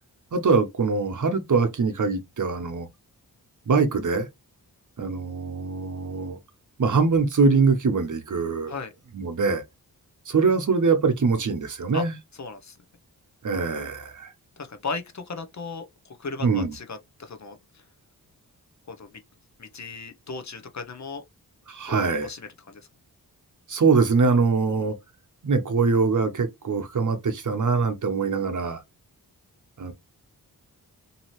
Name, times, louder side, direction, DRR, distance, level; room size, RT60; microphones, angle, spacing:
voice 1, 0.3-2.9 3.7-4.3 5.0-6.4 6.8-8.7 9.1-9.6 10.3-12.1 13.4-14.3 16.4-16.7 21.7-22.3 23.7-24.9 25.4-28.8 29.8-29.9, right 4 dB, 50° right, 0.8 m, -23 dB
voice 2, 12.4-12.8 14.6-17.8 18.9-19.2 19.6-21.2 21.9-22.8, left 4 dB, 45° left, 0.7 m, -36 dB
2.7 x 2.6 x 3.0 m
cardioid pair, 45°, 39 cm